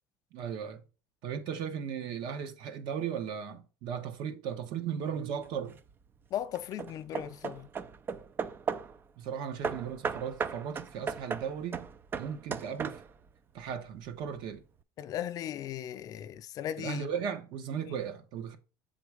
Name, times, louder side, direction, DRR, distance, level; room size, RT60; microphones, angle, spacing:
voice 1, 0.3-0.8 1.2-5.8 9.2-11.9 12.2-13.0 13.5-14.6 16.8-18.6, right 7 dB, 55° right, 1.0 m, -36 dB
Hammer / Wood, 5.4-5.9 6.5-9.0 9.6-13.3, right 6 dB, 25° right, 0.4 m, -37 dB
voice 2, 6.3-7.7 15.0-17.1, left 11 dB, 40° left, 0.4 m, -37 dB
7.2 x 3.9 x 4.8 m
cardioid pair, 155°, 9 cm